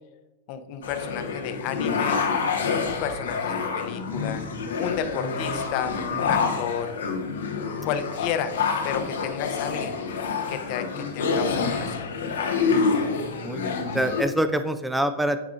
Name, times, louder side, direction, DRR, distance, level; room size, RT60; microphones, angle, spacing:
voice 1, 0.5-2.2 2.8-4.4 4.8-6.9 7.8-8.6 8.8-10.0 10.5-12.1, left 8 dB, 50° left, 9 dB, 0.6 m, -32 dB
sound 1, 0.8-14.2, left 5 dB, 80° left, 0.9 m, -27 dB
voice 2, 13.1-15.4, right 1 dB, 5° right, 9 dB, 0.4 m, -26 dB
9.2 x 4.8 x 2.5 m, 1.1 s
hypercardioid pair, 105°, 0 cm